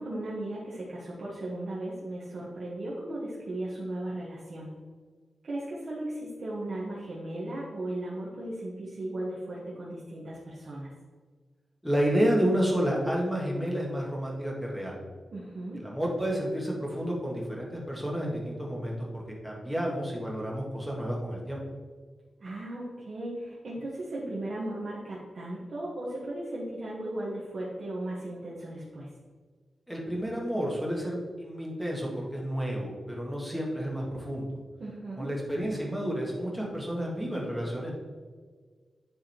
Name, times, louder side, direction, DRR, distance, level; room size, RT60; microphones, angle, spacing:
voice 1, 0.0-4.7 5.4-10.9 15.3-15.8 22.4-29.1 34.8-35.3, right 1 dB, 50° right, -7 dB, 1.5 m, -36 dB
voice 2, 11.8-15.0 15.7-21.6 29.9-34.6 35.2-37.9, equal, ahead, -3 dB, 1.7 m, -30 dB
10.5 x 3.8 x 4.5 m, 1.5 s
wide cardioid pair, 165°, 0 cm